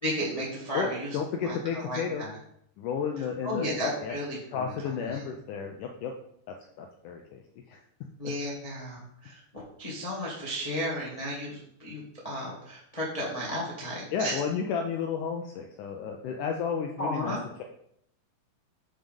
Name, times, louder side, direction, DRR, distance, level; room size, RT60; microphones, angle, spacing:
voice 1, 0.0-1.2 1.4-2.3 3.4-4.7 5.0-5.2 8.2-14.4 17.0-17.4, equal, 35° left, -5 dB, 0.6 m, -34 dB
voice 2, 0.7-2.3 2.8-4.2 4.5-6.1 6.8-7.4 7.7-7.8 14.1-17.6, left 6 dB, 80° left, 3 dB, 1.8 m, -32 dB
7.4 x 5.6 x 5.2 m, 0.71 s
omnidirectional pair, 4.4 m